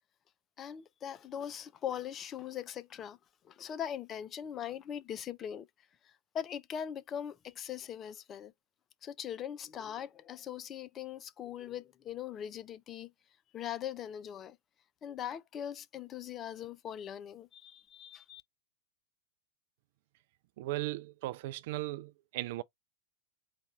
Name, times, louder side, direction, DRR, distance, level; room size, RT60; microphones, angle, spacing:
voice 1, 0.6-3.2 3.4-5.7 6.0-8.5 9.0-13.1 13.5-14.6 15.0-18.4, left 9 dB, 25° left, 0.4 m, -41 dB
voice 2, 20.6-22.6, right 17 dB, 50° right, 0.3 m, -37 dB
4.2 x 2.3 x 4.2 m
figure-of-eight pair, 90°, 0 cm